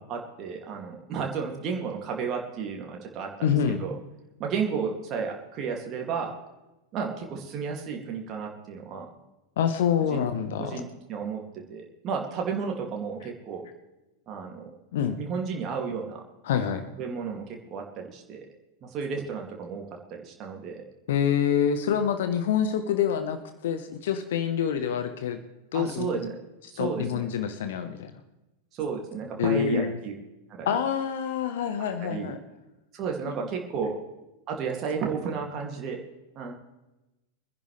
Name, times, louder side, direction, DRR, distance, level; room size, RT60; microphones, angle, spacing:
voice 1, 0.1-3.5 3.8-4.0 4.4-6.3 6.9-9.1 10.1-10.3 10.6-11.4 11.7-13.7 14.3-14.6 15.2-16.2 17.0-18.4 18.8-19.8 20.1-20.8 25.7-26.4 26.7-27.2 28.7-30.1 30.5-30.7 32.0-32.3 32.9-34.0 34.5-36.0 36.3-36.5, right 6 dB, 35° right, 1 dB, 2.5 m, -32 dB
voice 2, 3.4-3.8 9.6-10.8 14.9-15.2 16.4-16.9 21.1-25.4 25.7-26.1 26.8-28.1 29.4-30.0 30.6-32.4, left 8 dB, 55° left, 9 dB, 1.1 m, -26 dB
25.0 x 10.5 x 3.3 m, 1.0 s
figure-of-eight pair, 90°, 0 cm